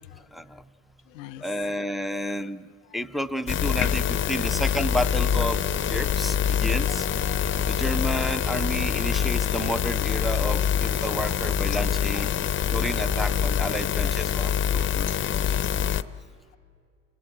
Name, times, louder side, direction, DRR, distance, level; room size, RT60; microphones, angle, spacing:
voice 1, 0.3-0.6 1.4-2.6 2.9-7.1 7.7-12.3 12.7-15.6, equal, ahead, 14 dB, 0.6 m, -31 dB
voice 2, 1.1-2.4 4.2-4.5 6.9-7.0 7.3-7.7 13.1-13.2, left 16 dB, 85° left, 12 dB, 0.7 m, -45 dB
sound 1, 3.5-16.0, left 9 dB, 30° left, 0.7 m, -25 dB
sound 2, 4.4-12.4, right 4 dB, 25° right, 2.8 m, -44 dB
sound 3, 6.8-11.5, right 5 dB, 65° right, 4.5 m, -49 dB
29.0 x 17.0 x 9.0 m, 2.3 s
supercardioid pair, 90°, 38 cm